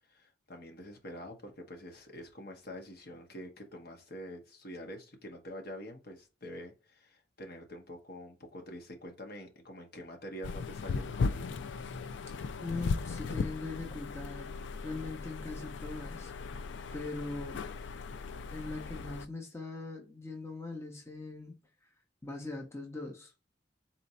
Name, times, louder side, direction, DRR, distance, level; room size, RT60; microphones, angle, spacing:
voice 1, 0.1-11.5, equal, 55° left, 1.1 m, -46 dB
sound 1, 10.4-19.2, left 4 dB, 75° left, 0.4 m, -37 dB
voice 2, 11.8-12.1 12.6-14.6 14.8-16.3 16.9-17.7 18.5-21.6 22.2-23.3, left 3 dB, 15° left, 0.7 m, -41 dB
4.2 x 2.6 x 4.2 m
head